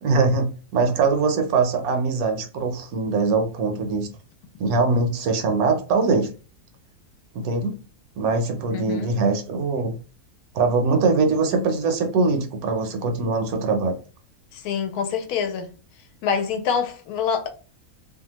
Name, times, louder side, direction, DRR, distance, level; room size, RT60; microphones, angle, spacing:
voice 1, 0.0-4.1 4.6-6.3 7.3-7.8 8.2-10.0 10.5-14.0, right 4 dB, 75° right, 1.0 m, -22 dB
voice 2, 8.7-9.1 14.5-15.7 16.2-17.5, left 6 dB, 80° left, 1.1 m, -26 dB
2.7 x 2.2 x 2.9 m
omnidirectional pair, 1.6 m